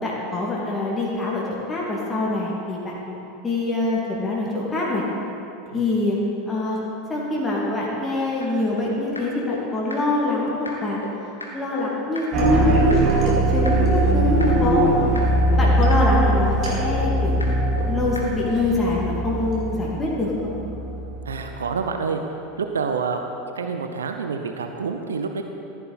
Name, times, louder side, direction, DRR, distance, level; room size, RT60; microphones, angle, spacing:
voice 1, 0.0-3.1 3.4-5.0 5.7-6.2 6.5-6.8 7.1-11.0 11.5-14.9 15.6-17.4 17.9-20.5, left 2 dB, 15° left, -5 dB, 2.4 m, -25 dB
sound 1, 8.4-8.5 8.8-8.9 9.1-9.2 9.5-9.6 9.9-10.0 10.3-10.4 10.6-10.7 11.0-11.1 11.4-11.5 11.8-11.9 12.1-12.2 12.5-12.6 12.9-13.0 13.3-13.4 13.6-13.7 14.0-14.1 14.4-14.5 14.8-14.9 15.1-15.2 15.5-15.6 15.9-16.0 16.3-16.4 16.6-16.7 17.0-17.1 17.4-17.5 17.8-17.9 18.1-18.2, left 2 dB, 85° left, 1.5 m, -33 dB
sound 2, 12.3-21.5, right 1 dB, 40° right, 2.7 m, -21 dB
voice 2, 21.2-22.2 22.6-23.2 23.5-25.4, right 5 dB, 75° right, 5 dB, 0.7 m, -27 dB
14.5 x 10.0 x 4.1 m, 3.0 s
figure-of-eight pair, 80°, 0 cm